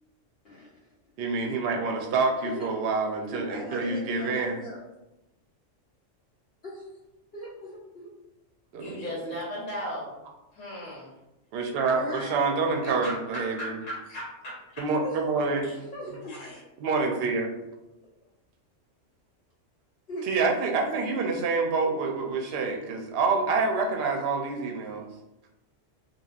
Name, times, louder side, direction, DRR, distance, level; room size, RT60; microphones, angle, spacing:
voice 1, 1.2-4.6 8.7-9.2 11.5-13.8 14.8-15.7 16.8-17.5 20.3-25.1, right 4 dB, 60° right, 2 dB, 0.7 m, -27 dB
voice 2, 3.3-4.8 6.6-6.9 7.3-8.1 11.9-12.4 15.0-15.2 15.4-16.3 17.2-17.3 20.1-20.3, left 2 dB, 60° left, -7 dB, 0.8 m, -39 dB
voice 3, 8.7-10.2 10.5-11.1 12.5-14.9 15.6-15.7 16.3-16.6, equal, 90° left, -4 dB, 1.1 m, -37 dB
3.2 x 2.3 x 2.4 m, 0.93 s
omnidirectional pair, 1.3 m